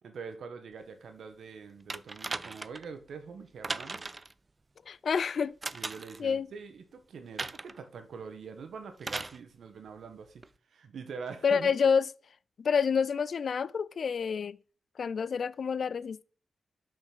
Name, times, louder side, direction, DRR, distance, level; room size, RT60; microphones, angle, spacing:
voice 1, 0.0-4.1 5.7-10.4 10.7-11.7, right 5 dB, 75° right, 1.3 m, -44 dB
sound 1, 1.9-2.9 3.6-4.3 5.6-6.2 7.4-7.8 9.0-9.4 10.4-10.5, right 3 dB, 30° right, 0.4 m, -37 dB
voice 2, 4.9-5.5 6.2-6.5 11.4-12.0 12.6-14.6 15.0-16.2, left 6 dB, 60° left, 0.3 m, -28 dB
6.0 x 5.2 x 5.9 m
cardioid pair, 95°, 0 cm